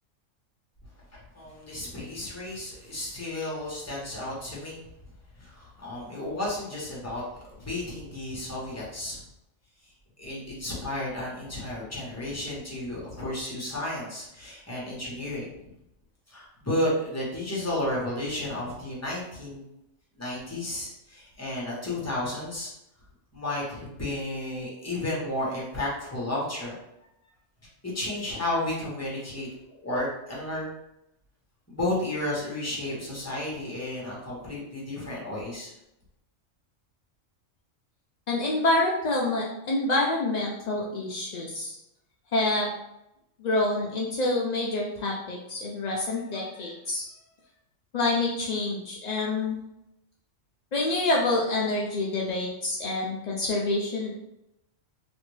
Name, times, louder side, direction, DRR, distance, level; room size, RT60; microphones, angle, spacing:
voice 1, 1.3-4.8 5.3-7.2 7.5-9.2 9.8-15.7 16.3-19.7 20.2-22.7 23.3-26.8 27.8-29.5 29.8-30.7 31.7-35.7, left 1 dB, 15° left, -6 dB, 1.0 m, -32 dB
voice 2, 38.3-41.7 42.3-42.7 43.4-47.0 47.9-49.6 50.7-54.2, left 2 dB, 70° left, -3 dB, 0.4 m, -27 dB
3.0 x 2.5 x 3.1 m, 0.85 s
omnidirectional pair, 1.3 m